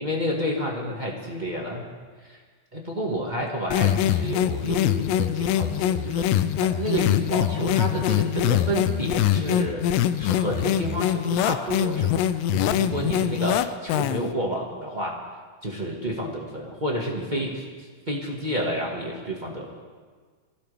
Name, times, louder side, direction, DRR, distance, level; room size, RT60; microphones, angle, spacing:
voice 1, 0.0-1.9 2.2-2.4 2.7-9.8 10.2-12.2 12.5-15.2 15.6-19.7, right 1 dB, 35° right, -2 dB, 0.7 m, -30 dB
sound 1, 3.7-14.3, left 11 dB, 90° left, 2.3 m, -23 dB
24.5 x 15.5 x 3.4 m, 1.5 s
omnidirectional pair, 3.9 m